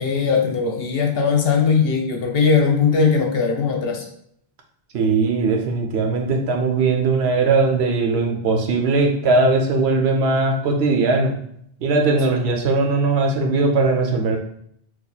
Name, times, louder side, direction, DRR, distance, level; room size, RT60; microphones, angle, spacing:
voice 1, 0.0-4.0, left 5 dB, 70° left, 2 dB, 0.9 m, -19 dB
voice 2, 4.9-11.3 11.8-14.4, right 3 dB, 85° right, 2 dB, 0.9 m, -19 dB
3.0 x 2.4 x 3.9 m, 0.68 s
omnidirectional pair, 1.1 m